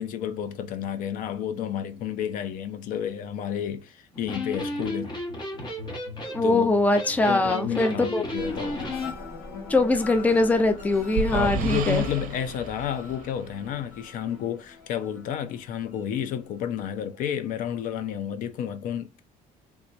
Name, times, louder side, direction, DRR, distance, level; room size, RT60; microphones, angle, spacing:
voice 1, 0.0-5.1 6.4-8.8 11.3-19.2, left 9 dB, 70° left, 0.6 m, -31 dB
Electric guitar, 4.1-9.1, left 1 dB, 30° left, 1.2 m, -34 dB
voice 2, 6.2-8.3 9.7-12.0, left 2 dB, 10° left, 0.5 m, -22 dB
sound 1, 8.3-17.2 17.6-18.1, left 4 dB, 85° left, 2.1 m, -43 dB
sound 2, 10.5-14.0, right 5 dB, 65° right, 0.6 m, -33 dB
3.4 x 3.1 x 2.5 m
cardioid pair, 140°, 15 cm